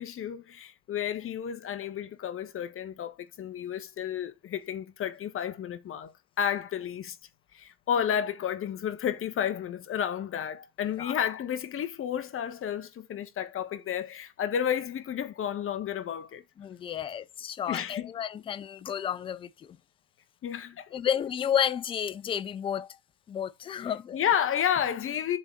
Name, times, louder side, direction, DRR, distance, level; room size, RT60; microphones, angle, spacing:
voice 1, 0.0-6.1 6.4-7.2 7.5-16.4 17.7-18.1 20.4-21.0 24.1-25.4, left 9 dB, 30° left, 1.3 m, -31 dB
voice 2, 16.6-19.8 20.9-22.9 23.3-24.2, left 9 dB, 15° left, 0.4 m, -31 dB
7.6 x 4.0 x 4.4 m
supercardioid pair, 115°, 44 cm